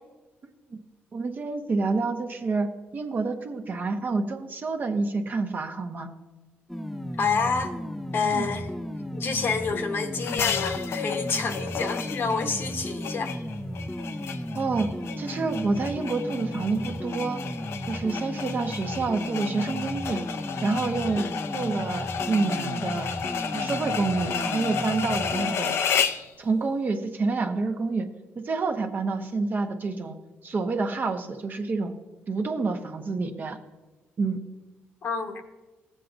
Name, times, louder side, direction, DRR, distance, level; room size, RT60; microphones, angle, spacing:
voice 1, 1.1-6.1 8.3-8.5 14.5-14.9 15.2-17.4 17.9-20.2 20.6-21.2 21.5-23.1 23.5-25.7 26.4-28.1 28.3-30.2 30.4-31.9 32.3-33.6 34.2-34.4, right 3 dB, 45° right, 5 dB, 0.9 m, -28 dB
sound 1, 6.7-25.6, equal, 5° left, 0.5 m, -35 dB
voice 2, 7.2-7.7 8.1-8.7 9.1-13.3 21.1-21.3 23.0-23.1 25.5-25.8 35.0-35.3, left 5 dB, 55° left, 6 dB, 1.0 m, -28 dB
sound 2, 10.2-26.3, left 7 dB, 75° left, 0.6 m, -32 dB
15.5 x 7.5 x 2.6 m, 1.2 s
cardioid pair, 85°, 4 cm